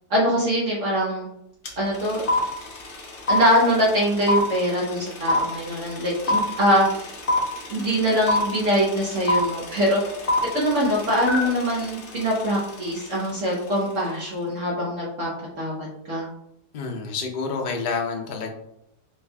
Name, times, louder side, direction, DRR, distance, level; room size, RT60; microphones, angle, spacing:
voice 1, 0.1-1.3 1.8-2.2 3.3-6.8 7.7-10.0 10.5-15.3 15.6-16.3, equal, 55° right, -5 dB, 1.2 m, -23 dB
sound 1, 1.7-1.8 1.9-13.1, left 2 dB, 45° left, 0.8 m, -25 dB
voice 2, 16.7-18.5, left 4 dB, 85° left, 2 dB, 0.4 m, -28 dB
4.4 x 2.4 x 3.4 m, 0.79 s
omnidirectional pair, 1.7 m